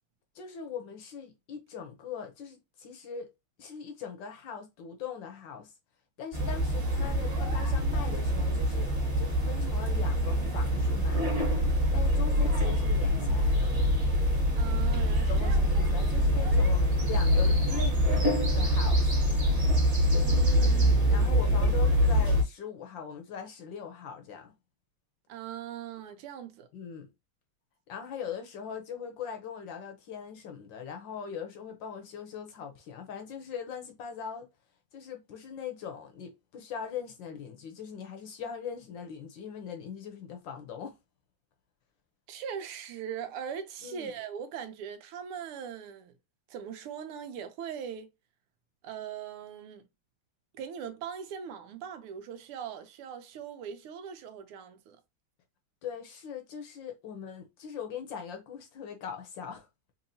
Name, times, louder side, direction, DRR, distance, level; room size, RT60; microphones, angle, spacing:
voice 1, 0.3-3.3 3.6-5.7 6.2-11.3 11.9-13.7 15.3-19.1 21.1-24.5 26.7-27.1 27.9-34.5 34.9-40.9 43.8-44.1 55.8-59.7, left 7 dB, 70° left, 1.3 m, -41 dB
sound 1, 6.3-22.4, equal, 30° right, 1.8 m, -25 dB
voice 2, 14.6-15.6 20.2-21.2 25.3-26.7 42.3-46.1 46.5-48.1 48.8-49.9 50.5-55.0, right 8 dB, 85° right, 1.6 m, -40 dB
4.2 x 2.8 x 2.7 m
omnidirectional pair, 2.4 m